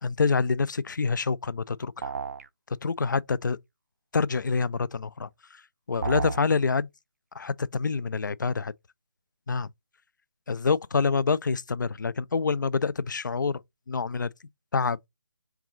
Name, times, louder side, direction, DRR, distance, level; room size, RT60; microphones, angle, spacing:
voice 1, 0.0-2.1 2.8-3.6 4.1-5.3 5.9-6.9 7.4-8.7 9.5-9.7 10.5-13.6 13.9-14.3 14.7-15.0, left 4 dB, 55° left, 0.4 m, -26 dB
sound 1, 2.0-2.5 6.0-6.5, right 4 dB, 45° right, 0.5 m, -31 dB
4.6 x 3.8 x 3.1 m
figure-of-eight pair, 150°, 12 cm